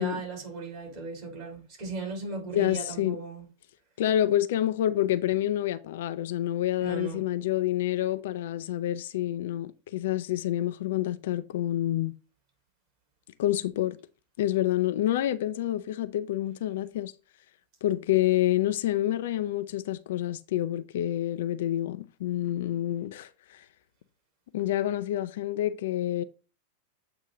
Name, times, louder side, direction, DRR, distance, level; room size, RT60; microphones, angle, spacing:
voice 1, 0.0-3.4 6.8-7.2, right 4 dB, 40° right, 3.7 m, -37 dB
voice 2, 2.5-3.2 4.0-12.1 13.4-14.0 14.4-17.1 17.8-23.6 24.5-26.2, left 13 dB, 55° left, 0.4 m, -28 dB
7.9 x 2.7 x 5.0 m
figure-of-eight pair, 90°, 0 cm